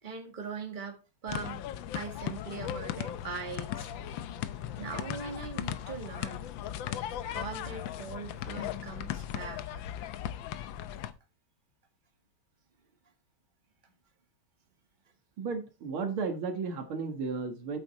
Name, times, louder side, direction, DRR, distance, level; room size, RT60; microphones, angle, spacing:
voice 1, 0.0-1.6 1.9-3.9 4.8-6.5 7.3-9.8 13.8-13.9, right 5 dB, 25° right, 1.9 m, -41 dB
sound 1, 1.3-11.1, left 11 dB, 70° left, 1.4 m, -37 dB
voice 2, 15.4-17.8, right 4 dB, 80° right, 2.5 m, -34 dB
8.4 x 8.1 x 4.1 m
omnidirectional pair, 2.3 m